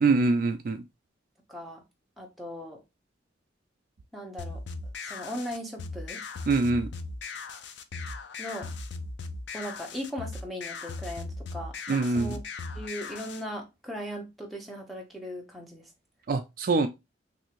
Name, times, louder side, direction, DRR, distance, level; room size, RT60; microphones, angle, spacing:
voice 1, 0.0-0.8 6.5-6.9 11.9-12.4 16.3-16.9, right 3 dB, 45° right, 0.3 m, -24 dB
voice 2, 1.5-1.8 2.2-2.8 4.1-4.6 5.0-6.2 8.4-8.7 9.5-11.8 12.1-12.4 12.7-15.9, equal, ahead, 0.8 m, -38 dB
sound 1, 4.4-13.4, left 3 dB, 60° left, 0.4 m, -38 dB
3.3 x 2.6 x 2.9 m
head